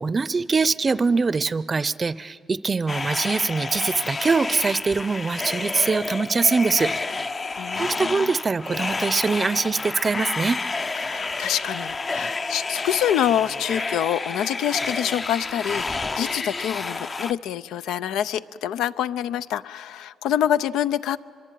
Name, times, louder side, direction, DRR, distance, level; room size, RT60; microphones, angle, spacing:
voice 1, 0.0-6.9 7.8-10.6, right 4 dB, 30° right, 18 dB, 0.6 m, -23 dB
sound 1, 2.9-17.3, left 3 dB, 30° left, 0.6 m, -30 dB
voice 2, 7.6-8.3 11.0-21.2, left 10 dB, 90° left, 14 dB, 0.5 m, -26 dB
25.0 x 22.5 x 9.2 m, 2.4 s
cardioid pair, 90°, 0 cm